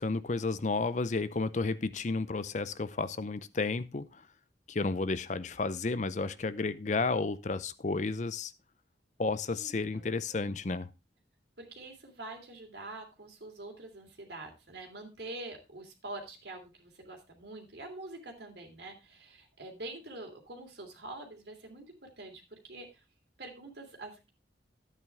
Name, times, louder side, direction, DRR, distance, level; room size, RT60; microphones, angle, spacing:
voice 1, 0.0-4.2 4.7-8.5 9.2-10.9, left 3 dB, 40° left, 0.6 m, -32 dB
voice 2, 9.5-10.1 11.6-23.0 23.4-24.3, right 2 dB, 65° right, 3.0 m, -45 dB
11.0 x 9.1 x 3.5 m
head